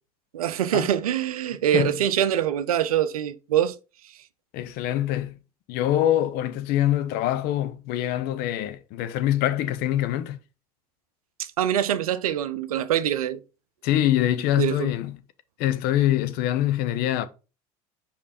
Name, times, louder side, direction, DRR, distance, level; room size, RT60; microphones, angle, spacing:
voice 1, 0.3-3.8 11.4-13.4 14.6-14.9, right 11 dB, 80° right, 0.6 m, -24 dB
voice 2, 4.5-5.4 5.7-10.4 13.8-15.2 15.6-17.3, left 12 dB, 60° left, 0.8 m, -24 dB
5.2 x 5.1 x 4.2 m
hypercardioid pair, 70°, 18 cm